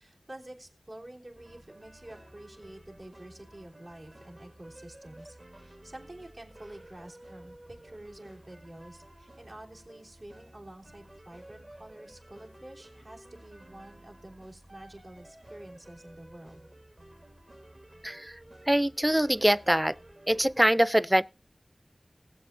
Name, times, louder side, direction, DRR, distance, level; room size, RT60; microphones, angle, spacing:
voice 1, 0.0-16.7, right 1 dB, 70° right, 3.4 m, -48 dB
sound 1, 1.3-20.7, right 1 dB, 50° right, 2.0 m, -53 dB
voice 2, 18.7-20.0 20.3-21.2, equal, 10° right, 0.4 m, -23 dB
20.5 x 7.7 x 2.6 m
wide cardioid pair, 50°, 0 cm